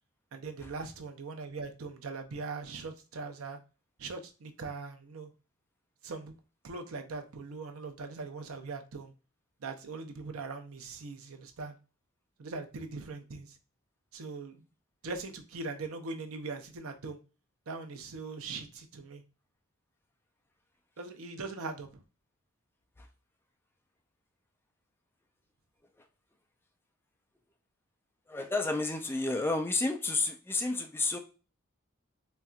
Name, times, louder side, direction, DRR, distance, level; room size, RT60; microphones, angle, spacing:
voice 1, 0.3-3.6 4.0-5.3 6.0-6.3 6.6-9.1 9.6-11.8 12.4-13.6 14.1-14.6 15.0-17.2 17.7-19.2 21.0-22.0, right 3 dB, 85° right, 0.6 m, -41 dB
voice 2, 28.3-31.2, left 3 dB, 10° left, 0.4 m, -30 dB
4.1 x 2.3 x 2.4 m
head